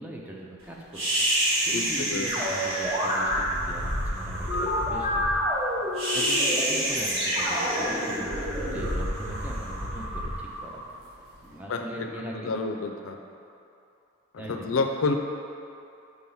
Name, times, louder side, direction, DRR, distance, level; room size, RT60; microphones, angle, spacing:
voice 1, 0.0-5.5 6.1-10.8 11.4-12.6 14.4-14.7, right 1 dB, 5° right, -3 dB, 0.5 m, -41 dB
sound 1, 0.9-11.3, right 1 dB, 70° right, 1.5 m, -29 dB
voice 2, 1.7-2.3 11.7-12.1 12.3-13.2 14.5-15.1, left 3 dB, 75° left, 4 dB, 0.4 m, -29 dB
sound 2, 2.3-3.4 4.5-8.9, equal, 25° right, 1.0 m, -29 dB
4.5 x 3.8 x 5.5 m, 2.7 s
head